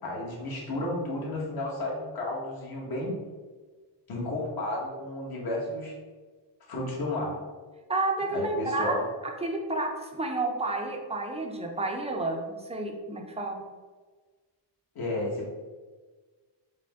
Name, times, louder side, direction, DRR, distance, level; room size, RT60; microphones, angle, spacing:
voice 1, 0.0-3.1 4.1-5.9 6.7-7.4 8.3-9.0 14.9-15.5, left 1 dB, 50° left, -3 dB, 1.3 m, -32 dB
voice 2, 7.9-8.9 9.4-13.6, right 2 dB, 15° right, 2 dB, 0.5 m, -30 dB
4.8 x 2.2 x 3.5 m, 1.4 s
cardioid pair, 105°, 46 cm